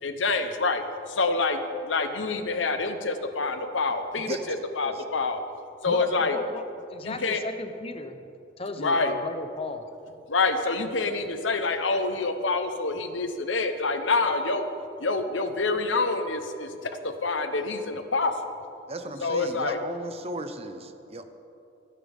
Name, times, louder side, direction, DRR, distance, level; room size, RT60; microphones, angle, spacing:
voice 1, 0.0-5.4 5.8-6.4 7.0-7.4 8.8-9.1 10.3-14.7 15.0-18.3 19.2-19.8, left 3 dB, 75° left, 8 dB, 1.0 m, -27 dB
voice 2, 5.9-6.6 6.9-8.2 8.6-9.8, left 2 dB, 30° left, 8 dB, 0.9 m, -35 dB
voice 3, 18.9-21.3, right 2 dB, 30° right, 8 dB, 0.8 m, -36 dB
27.5 x 9.9 x 3.6 m, 2.7 s
head